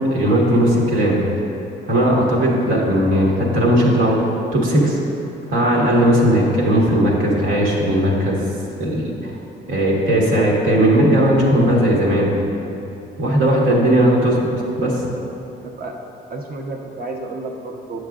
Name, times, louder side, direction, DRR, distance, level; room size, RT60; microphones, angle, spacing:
voice 1, 0.1-1.2 1.9-4.2 4.5-5.0 5.5-8.5 8.8-9.3 9.7-12.3 13.2-14.5 14.8-15.1, right 1 dB, 85° right, -3 dB, 1.5 m, -17 dB
voice 2, 15.6-16.0 16.3-18.0, right 2 dB, 50° right, 2 dB, 0.8 m, -31 dB
9.5 x 6.6 x 2.4 m, 2.8 s
cardioid pair, 90°, 20 cm